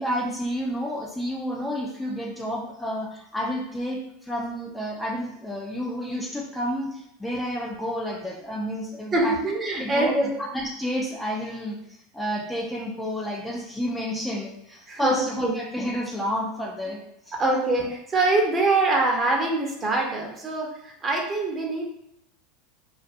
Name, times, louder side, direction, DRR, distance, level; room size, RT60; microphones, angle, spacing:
voice 1, 0.0-9.3 9.7-11.8 12.1-17.0 17.3-17.4, equal, 10° left, -2 dB, 0.5 m, -30 dB
voice 2, 9.1-10.4 14.9-15.6 17.4-21.9, right 2 dB, 25° right, 0 dB, 0.7 m, -24 dB
2.5 x 2.4 x 2.5 m, 0.80 s
hypercardioid pair, 95°, 0 cm